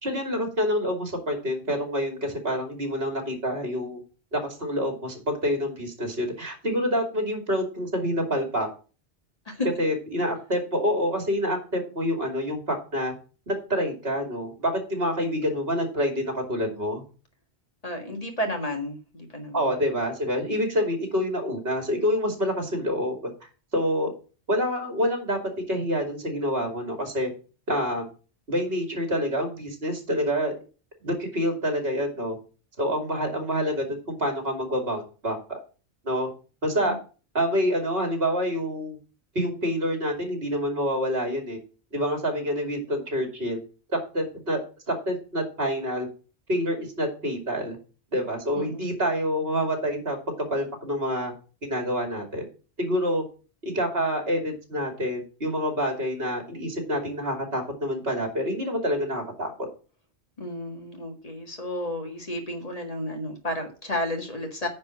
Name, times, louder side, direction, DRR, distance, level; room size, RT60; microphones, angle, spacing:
voice 1, 0.0-4.0 4.3-8.7 9.8-13.1 13.5-17.0 19.5-23.3 23.7-24.1 24.5-25.4 25.7-27.3 27.7-28.1 28.5-30.5 31.0-32.4 32.8-35.6 36.0-36.3 36.6-37.0 37.3-39.0 39.3-41.6 41.9-43.6 44.1-46.1 46.5-47.8 48.1-50.2 50.5-51.3 51.6-52.4 52.8-53.2 53.6-59.7, equal, 60° right, 4 dB, 2.8 m, -27 dB
voice 2, 17.8-19.8 36.9-37.0 48.5-48.9 60.4-64.7, left 1 dB, 35° left, 4 dB, 1.8 m, -32 dB
9.7 x 4.3 x 7.3 m, 0.36 s
omnidirectional pair, 1.2 m